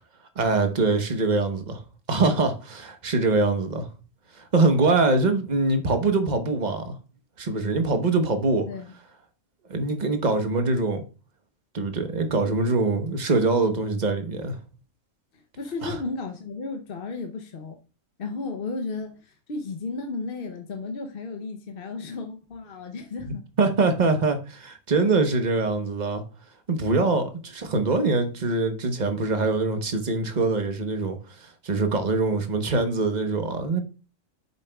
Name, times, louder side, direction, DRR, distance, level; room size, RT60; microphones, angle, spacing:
voice 1, 0.4-1.8 2.1-3.9 4.3-7.0 7.4-8.7 9.7-11.0 11.7-14.6 15.8-16.0 23.3-26.2 26.7-33.8, right 3 dB, 35° right, 1.1 m, -23 dB
voice 2, 15.6-17.8 18.2-23.4, left 3 dB, 50° left, 0.9 m, -34 dB
8.5 x 7.0 x 2.3 m
omnidirectional pair, 1.4 m